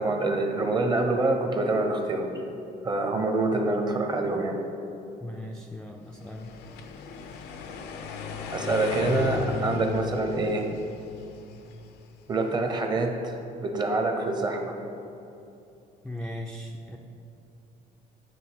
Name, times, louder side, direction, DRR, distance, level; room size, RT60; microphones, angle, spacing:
voice 1, 0.0-2.3 2.8-4.6 8.5-10.7 12.3-14.8, right 2 dB, 25° right, 4 dB, 0.7 m, -26 dB
voice 2, 5.2-6.5 16.0-17.0, left 1 dB, 5° left, 0 dB, 0.4 m, -38 dB
sound 1, 6.2-12.4, left 6 dB, 80° left, 0.5 m, -36 dB
9.2 x 3.2 x 4.5 m, 2.7 s
cardioid pair, 110°, 17 cm